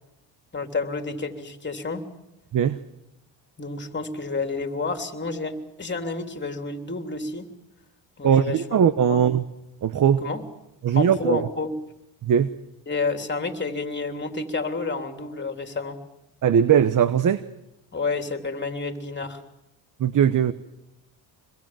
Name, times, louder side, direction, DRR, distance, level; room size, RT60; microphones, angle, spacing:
voice 1, 0.5-2.0 3.6-7.5 8.2-8.6 9.1-9.2 10.2-10.4 10.9-11.7 12.9-16.0 17.9-19.4, left 3 dB, 25° left, 6 dB, 3.3 m, -30 dB
voice 2, 8.2-9.4 9.8-10.2 10.8-11.5 12.2-12.5 16.4-17.4 20.0-20.5, right 8 dB, 45° right, 14 dB, 1.1 m, -19 dB
26.5 x 22.0 x 7.6 m, 0.90 s
cardioid pair, 85°, 46 cm